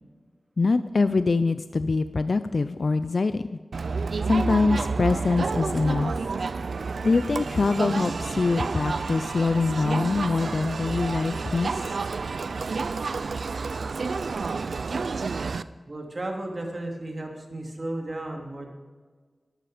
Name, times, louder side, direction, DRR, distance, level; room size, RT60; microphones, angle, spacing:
voice 1, 0.6-3.6 4.3-6.1 7.0-11.8, left 3 dB, 65° left, 11 dB, 0.5 m, -24 dB
Crowd, 3.7-15.6, right 4 dB, 80° right, 0.4 m, -30 dB
voice 2, 15.9-18.7, right 1 dB, 45° right, 1 dB, 2.8 m, -34 dB
13.5 x 12.0 x 5.1 m, 1.5 s
wide cardioid pair, 60°, 0 cm